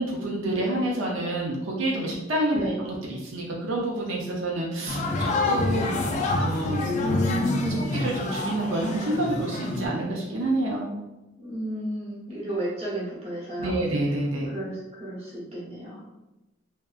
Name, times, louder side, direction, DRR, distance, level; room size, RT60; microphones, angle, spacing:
voice 1, 0.0-6.0 6.4-6.9 7.8-10.9 13.6-14.6, right 1 dB, 80° right, -3 dB, 0.5 m, -28 dB
sound 1, 4.9-9.9, left 2 dB, 40° left, 0.3 m, -27 dB
voice 2, 7.0-7.8 11.4-13.8 14.5-16.0, equal, 35° right, -6 dB, 0.9 m, -32 dB
2.6 x 2.2 x 2.3 m, 1.0 s
head